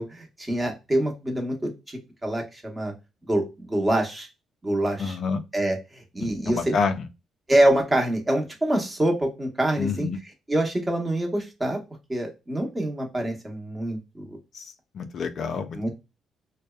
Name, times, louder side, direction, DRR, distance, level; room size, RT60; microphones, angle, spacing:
voice 1, 0.0-1.7 2.2-2.9 3.3-4.3 4.6-5.2 5.5-6.7 7.5-10.1 10.5-11.8 12.1-14.2 15.7-15.9, right 1 dB, 20° right, 0.9 m, -25 dB
voice 2, 5.0-5.4 6.2-7.1 9.8-10.2 14.5-15.9, left 5 dB, 60° left, 0.3 m, -28 dB
2.7 x 2.1 x 2.3 m
cardioid pair, 90°, 0 cm